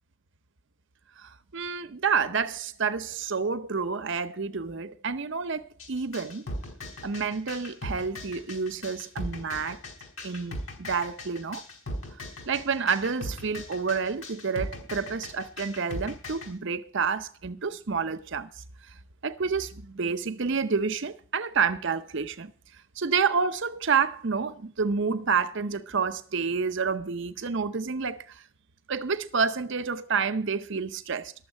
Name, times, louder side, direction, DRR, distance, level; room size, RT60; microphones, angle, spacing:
voice 1, 1.2-5.6 5.9-6.4 7.0-9.8 10.2-11.6 12.5-18.9 19.2-22.5 23.0-28.4 28.9-31.3, right 5 dB, 60° right, 0.7 m, -29 dB
sound 1, 5.8-16.5, left 1 dB, 75° left, 4.7 m, -38 dB
12.5 x 7.3 x 8.8 m
head